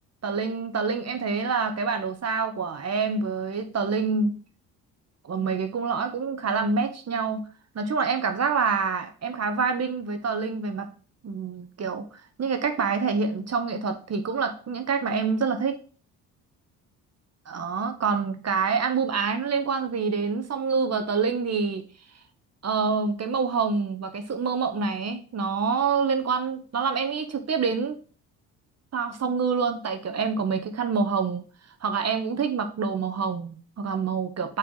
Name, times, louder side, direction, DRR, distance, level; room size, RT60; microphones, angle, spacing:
voice 1, 0.2-4.4 5.2-7.5 7.7-10.9 11.2-12.0 12.4-15.8 17.5-21.8 22.6-28.0 28.9-31.4 31.8-34.6, right 5 dB, 40° right, 1.1 m, -26 dB
6.1 x 3.4 x 5.4 m
hypercardioid pair, 55°, 41 cm